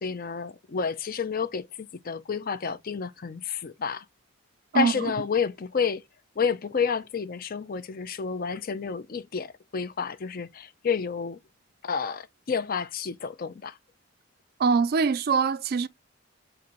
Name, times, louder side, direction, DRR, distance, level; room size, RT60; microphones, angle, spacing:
voice 1, 0.0-4.0 4.7-6.0 6.4-11.4 11.8-13.8, left 5 dB, 45° left, 0.5 m, -30 dB
voice 2, 4.7-5.1 14.6-15.9, right 5 dB, 50° right, 0.3 m, -23 dB
4.3 x 2.6 x 3.8 m
head